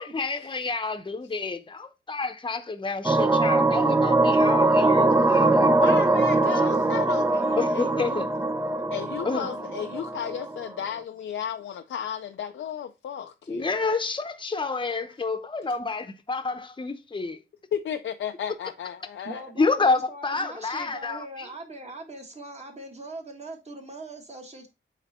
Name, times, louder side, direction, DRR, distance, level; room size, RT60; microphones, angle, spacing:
voice 1, 0.0-5.8 7.6-8.3 9.2-9.5 13.5-17.4 19.6-21.5, left 4 dB, 25° left, 0.8 m, -29 dB
sound 1, 3.0-10.6, right 2 dB, 15° right, 0.5 m, -22 dB
voice 2, 5.8-8.2 8.9-13.7 17.7-19.4, left 9 dB, 90° left, 0.5 m, -34 dB
voice 3, 19.2-24.7, right 2 dB, 35° right, 1.8 m, -41 dB
8.2 x 3.3 x 4.2 m
wide cardioid pair, 100°, 20 cm